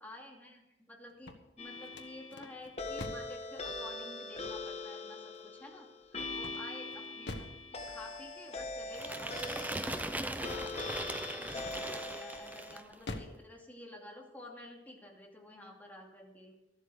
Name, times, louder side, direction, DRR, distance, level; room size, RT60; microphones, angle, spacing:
voice 1, 0.0-16.6, left 1 dB, 10° left, -1 dB, 2.5 m, -51 dB
sound 1, 1.1-3.4 6.4-7.7 11.6-12.1 12.6-13.4, left 2 dB, 75° left, 1.3 m, -45 dB
sound 2, 1.6-12.8, left 3 dB, 35° left, 1.5 m, -42 dB
sound 3, 8.9-12.9, right 1 dB, 10° right, 0.6 m, -40 dB
13.0 x 12.5 x 4.9 m, 0.91 s
head